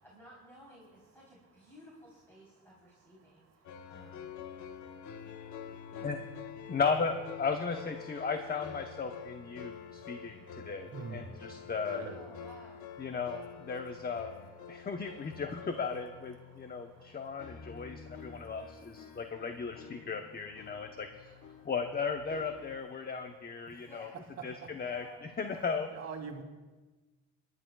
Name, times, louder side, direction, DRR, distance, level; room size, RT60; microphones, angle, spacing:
voice 1, 0.0-4.3 5.9-6.1 12.1-12.9 23.8-24.2 24.8-25.3, equal, 10° left, -5 dB, 3.7 m, -55 dB
sound 1, 3.6-22.8, left 7 dB, 75° left, 1.1 m, -48 dB
voice 2, 6.7-12.0 13.0-21.3 21.6-24.1 24.4-25.9, left 5 dB, 30° left, 5 dB, 0.9 m, -36 dB
voice 3, 10.9-11.3 11.9-12.2 25.9-26.4, right 5 dB, 55° right, 4 dB, 2.1 m, -42 dB
29.5 x 11.0 x 2.3 m, 1.3 s
cardioid pair, 90°, 30 cm